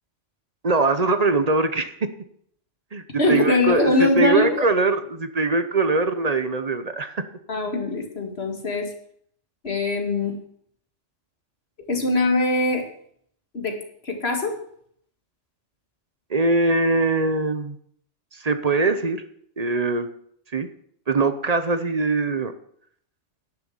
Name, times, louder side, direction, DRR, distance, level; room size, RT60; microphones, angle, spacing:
voice 1, 0.6-2.1 2.9-7.2 16.3-17.8 18.3-19.2 19.6-20.1 20.5-20.7 21.1-22.5, right 3 dB, 35° right, 9 dB, 0.8 m, -22 dB
voice 2, 3.2-4.5 7.5-8.9 9.6-10.4 11.9-12.9 13.5-13.8 14.0-14.5, left 2 dB, 60° left, 3 dB, 2.2 m, -22 dB
10.5 x 6.8 x 7.2 m, 0.66 s
omnidirectional pair, 1.2 m